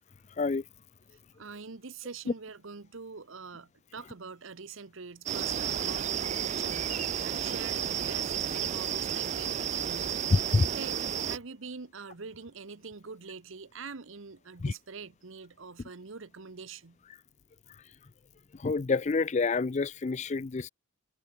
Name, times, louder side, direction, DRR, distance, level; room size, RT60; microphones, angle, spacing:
voice 1, 1.4-17.0, right 4 dB, 70° right, 1.0 m, -45 dB
sound 1, 5.3-11.4, right 9 dB, 35° right, 0.4 m, -32 dB
voice 2, 10.3-10.7 14.6-14.7 18.6-20.7, left 3 dB, 35° left, 0.4 m, -27 dB
head